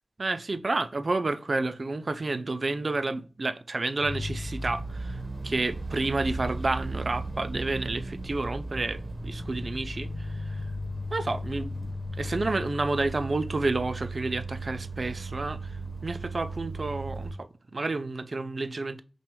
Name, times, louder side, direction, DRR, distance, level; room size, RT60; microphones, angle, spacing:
voice 1, 0.2-5.2 5.4-10.3 11.1-15.7 16.0-17.5 17.7-19.0, right 3 dB, 65° right, 0.3 m, -30 dB
sound 1, 4.0-17.3, right 1 dB, 35° right, 1.0 m, -35 dB
5.8 x 2.3 x 3.1 m
cardioid pair, 45°, 0 cm